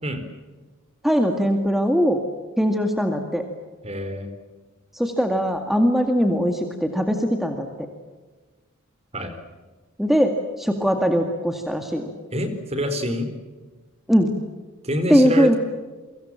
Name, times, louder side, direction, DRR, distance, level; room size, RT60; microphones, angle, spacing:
voice 1, 1.0-2.2 2.6-3.4 4.9-7.7 10.0-12.1 14.1-14.3 15.1-15.6, equal, ahead, 4 dB, 2.0 m, -20 dB
voice 2, 3.8-4.3 9.1-9.4 12.3-13.3 14.8-15.6, equal, 30° right, 9 dB, 4.1 m, -26 dB
29.5 x 24.0 x 7.5 m, 1.3 s
head